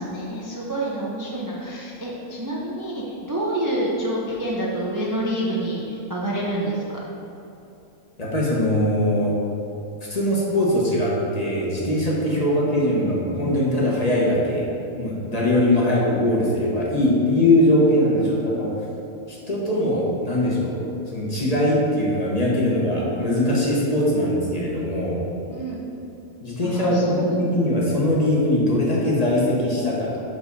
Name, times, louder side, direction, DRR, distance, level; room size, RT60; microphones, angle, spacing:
voice 1, 0.0-7.0 18.2-18.3 25.5-25.8 26.6-27.5, right 1 dB, 35° right, -5 dB, 0.3 m, -28 dB
voice 2, 8.2-9.3 10.1-14.7 14.9-18.7 19.3-20.8 21.1-25.3 26.4-30.2, left 1 dB, 30° left, -5 dB, 1.1 m, -21 dB
6.0 x 5.3 x 4.1 m, 2.9 s
omnidirectional pair, 1.5 m